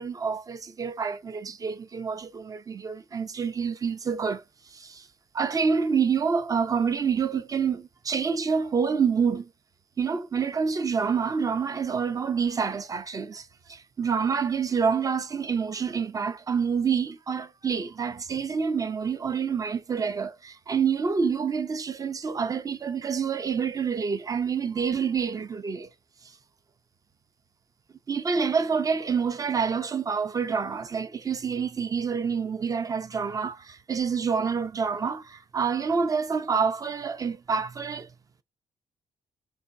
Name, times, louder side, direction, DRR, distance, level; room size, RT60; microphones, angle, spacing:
voice 1, 0.0-5.1 5.3-9.5 10.0-25.9 28.1-38.1, right 6 dB, 25° right, 0.4 m, -27 dB
3.8 x 3.4 x 2.6 m
wide cardioid pair, 175°, 14 cm